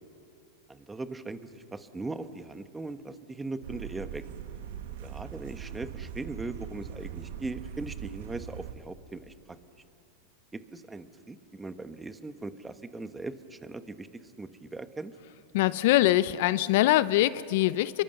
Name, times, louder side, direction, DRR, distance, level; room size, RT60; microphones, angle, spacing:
voice 1, 0.7-4.2 5.0-9.3 10.5-14.1 14.4-15.1, right 3 dB, 10° right, 10 dB, 1.2 m, -39 dB
sound 1, 3.6-8.7, right 9 dB, 70° right, 1.6 m, -41 dB
voice 2, 15.5-18.0, left 15 dB, 65° left, 17 dB, 0.6 m, -23 dB
30.0 x 23.0 x 6.7 m, 2.6 s
hypercardioid pair, 110°, 0 cm